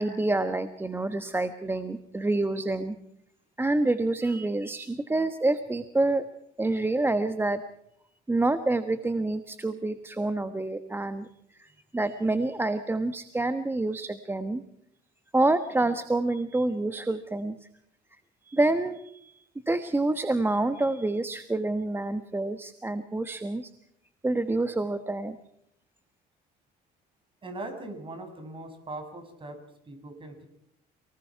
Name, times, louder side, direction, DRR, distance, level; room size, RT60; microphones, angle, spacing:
voice 1, 0.0-3.0 3.6-6.2 6.6-7.6 8.3-11.3 11.6-14.6 15.3-17.6 18.4-23.7 24.2-25.4, right 2 dB, 15° right, 10 dB, 1.2 m, -27 dB
voice 2, 27.4-30.5, right 2 dB, 30° right, 6 dB, 6.2 m, -40 dB
30.0 x 19.5 x 4.7 m, 0.75 s
cardioid pair, 110°, 17 cm